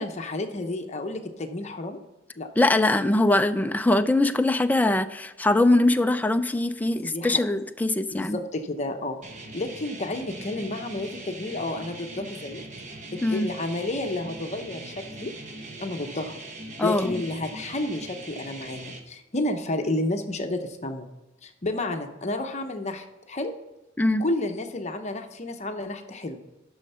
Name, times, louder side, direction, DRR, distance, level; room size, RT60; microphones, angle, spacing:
voice 1, 0.0-2.0 2.4-2.5 7.0-7.5 8.1-9.2 9.5-12.6 13.1-15.3 15.8-16.4 16.8-21.1 21.4-23.5 24.2-26.4, left 2 dB, 35° left, 5 dB, 0.8 m, -31 dB
voice 2, 2.6-8.4 13.2-13.5 16.8-17.2 24.0-24.2, left 2 dB, 10° left, 9 dB, 0.4 m, -22 dB
sound 1, 9.2-19.0, right 2 dB, 40° right, 1.2 m, -41 dB
10.5 x 6.3 x 5.6 m, 1.0 s
head